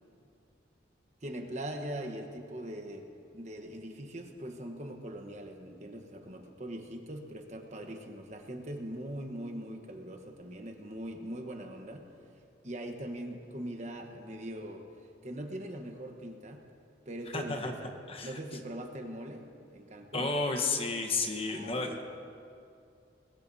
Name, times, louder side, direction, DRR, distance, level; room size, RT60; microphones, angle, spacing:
voice 1, 1.2-12.0 12.6-14.8 15.2-16.6 17.1-17.9 18.2-20.3 21.5-21.8, right 1 dB, 40° right, 4 dB, 1.1 m, -41 dB
voice 2, 17.3-17.7 18.1-18.4 20.1-22.0, left 3 dB, 30° left, 3 dB, 1.1 m, -32 dB
21.0 x 20.0 x 2.8 m, 2.5 s
head